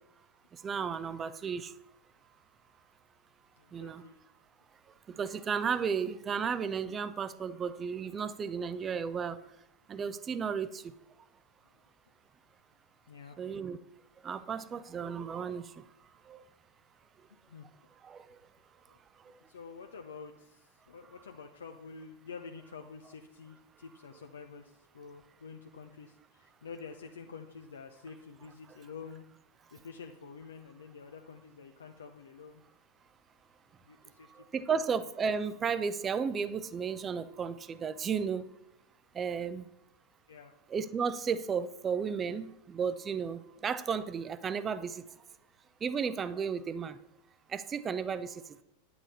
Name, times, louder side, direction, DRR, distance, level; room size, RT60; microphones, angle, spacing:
voice 1, 0.5-1.7 3.7-4.0 5.1-9.4 9.9-10.9 13.4-13.8 14.2-15.8 16.3-16.4 18.0-18.4 34.3-38.5 39.1-39.7 40.7-45.1 45.8-47.0 47.5-48.4, right 6 dB, 20° right, 14 dB, 0.6 m, -34 dB
voice 2, 3.6-4.2 13.1-13.4 17.5-17.7 18.9-19.0 19.5-29.3 29.7-32.6 33.8-34.8 40.3-40.6, left 5 dB, 65° left, 4 dB, 0.7 m, -48 dB
10.0 x 8.6 x 4.2 m, 0.84 s
figure-of-eight pair, 90°, 0 cm